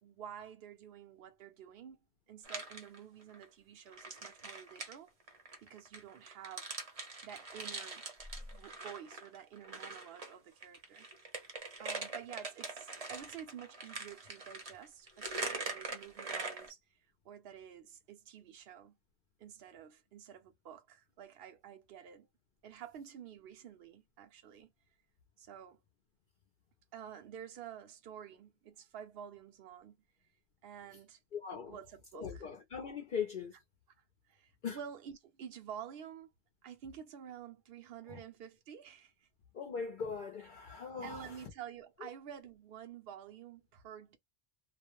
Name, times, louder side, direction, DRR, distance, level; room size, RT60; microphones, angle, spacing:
voice 1, 0.0-2.0 2.3-5.1 5.6-6.7 7.2-8.0 8.4-11.1 11.8-18.9 19.4-22.3 22.6-24.7 25.4-25.8 26.9-30.0 30.6-31.2 31.7-32.5 34.3-36.3 36.6-39.3 41.0-44.2, right 9 dB, 70° right, 0.8 m, -50 dB
sound 1, 2.4-3.4 3.9-10.3 10.6-16.7, right 3 dB, 40° right, 0.8 m, -43 dB
voice 2, 31.3-31.8 32.1-33.5 34.6-34.8 38.1-38.2 39.5-41.4, left 6 dB, 60° left, 0.7 m, -40 dB
2.4 x 2.0 x 2.9 m
omnidirectional pair, 1.1 m